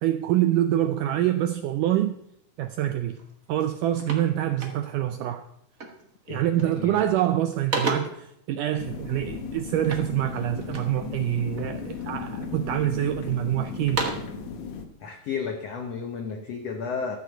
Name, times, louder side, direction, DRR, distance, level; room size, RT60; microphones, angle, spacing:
voice 1, 0.0-2.2 2.6-3.2 3.5-5.4 6.3-14.1, right 12 dB, 85° right, 8 dB, 1.8 m, -26 dB
sound 1, 3.1-3.3 3.6-5.2 5.8-6.1 6.4-6.9 7.3-8.3 9.8-11.0 11.5-12.2 12.7-13.3 13.7-14.4, right 2 dB, 40° right, 1.1 m, -34 dB
voice 2, 6.3-7.2 15.0-17.2, left 5 dB, 85° left, 5 dB, 1.4 m, -33 dB
sound 2, 8.8-14.8, left 5 dB, 65° left, 2.3 m, -36 dB
14.0 x 6.4 x 7.9 m, 0.76 s
omnidirectional pair, 4.4 m